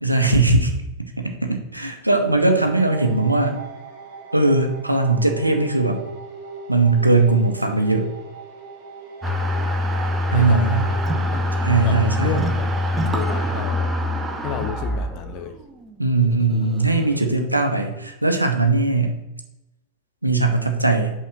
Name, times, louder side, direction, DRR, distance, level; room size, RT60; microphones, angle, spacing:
voice 1, 0.0-0.7 1.2-3.6 4.3-6.0 6.7-8.1 10.3-10.9 11.6-12.4 16.0-19.2 20.2-21.1, right 3 dB, 85° right, 5 dB, 0.8 m, -19 dB
sound 1, 2.6-13.6, right 4 dB, 50° right, 1.3 m, -40 dB
sound 2, 9.2-17.3, left 1 dB, 15° right, 0.8 m, -24 dB
voice 2, 10.3-11.0 11.3-11.4 11.8-13.9 14.4-15.5, left 7 dB, 40° left, 7 dB, 0.8 m, -32 dB
5.5 x 3.8 x 6.0 m, 0.91 s
figure-of-eight pair, 90°, 0 cm